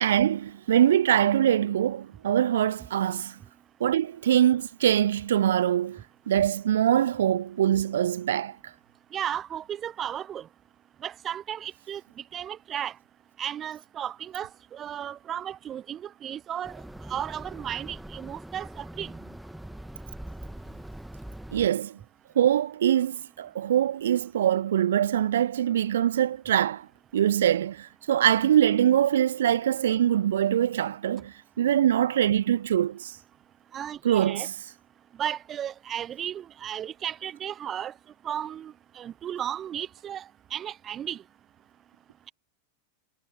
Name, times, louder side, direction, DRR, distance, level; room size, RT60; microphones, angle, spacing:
voice 1, 0.0-3.3 3.8-8.5 21.5-22.0 22.3-26.9 27.1-33.1 34.0-34.4, right 10 dB, 60° right, 0.8 m, -23 dB
voice 2, 9.1-10.5 11.0-12.0 12.3-12.9 13.4-16.8 17.1-19.1 33.7-34.5 35.2-37.9 38.2-40.2 40.5-41.2, right 10 dB, 25° right, 1.2 m, -34 dB
sound 1, 16.6-21.7, right 1 dB, 5° right, 1.8 m, -42 dB
figure-of-eight pair, 90°, 0 cm